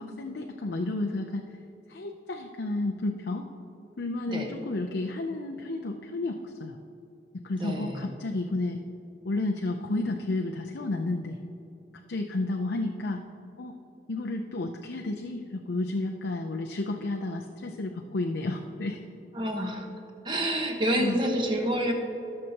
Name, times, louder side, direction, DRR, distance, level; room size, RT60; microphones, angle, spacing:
voice 1, 0.0-1.4 1.9-3.5 4.0-6.8 7.4-8.8 9.2-11.4 12.1-13.2 13.6-13.7 14.1-19.0 21.0-21.2, left 2 dB, 85° left, 2 dB, 0.6 m, -31 dB
voice 2, 7.6-8.1 19.3-19.9 20.2-21.9, equal, 25° right, 2 dB, 1.2 m, -28 dB
18.0 x 6.6 x 2.9 m, 2.9 s
head